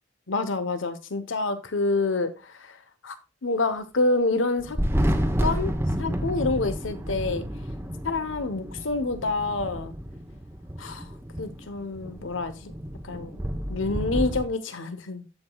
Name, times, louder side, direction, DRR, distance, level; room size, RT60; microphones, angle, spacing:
voice 1, 0.3-2.8 3.0-4.8 5.4-5.7 6.0-7.4 8.0-9.9 10.8-11.1 11.4-12.7 13.0-13.4 13.7-15.3, left 3 dB, 80° left, 1.0 m, -27 dB
Thunder, 4.6-14.4, equal, 10° right, 0.9 m, -30 dB
15.0 x 5.0 x 2.3 m
head